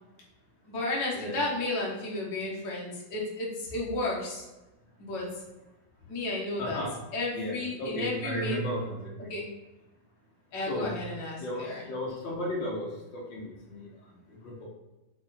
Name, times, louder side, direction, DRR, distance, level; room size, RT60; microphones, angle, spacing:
voice 1, 0.7-4.4 5.0-5.3 6.1-6.8 7.1-8.6 9.3-9.5 10.5-11.9, left 2 dB, 55° left, -4 dB, 1.2 m, -33 dB
voice 2, 6.6-6.9 7.3-9.3 10.7-10.9 11.4-13.9 14.4-14.7, equal, 90° left, -4 dB, 1.0 m, -34 dB
7.4 x 4.3 x 4.2 m, 1.0 s
omnidirectional pair, 4.5 m